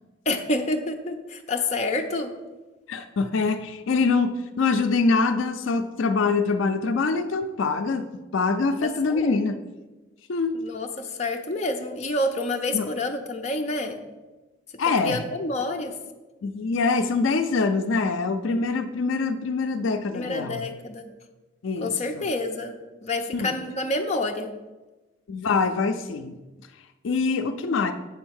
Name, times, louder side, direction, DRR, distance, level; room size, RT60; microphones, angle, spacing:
voice 1, 0.3-2.3 8.8-9.4 10.6-14.0 15.0-16.0 20.1-21.1 21.8-24.5, left 2 dB, 35° left, 3 dB, 0.6 m, -28 dB
voice 2, 2.9-8.1 8.3-9.6 10.3-10.6 12.7-12.9 14.8-15.2 16.4-20.7 21.6-22.3 23.3-23.5 25.3-26.4 27.0-27.9, left 4 dB, 75° left, 8 dB, 0.4 m, -24 dB
7.8 x 3.5 x 6.3 m, 1.1 s
head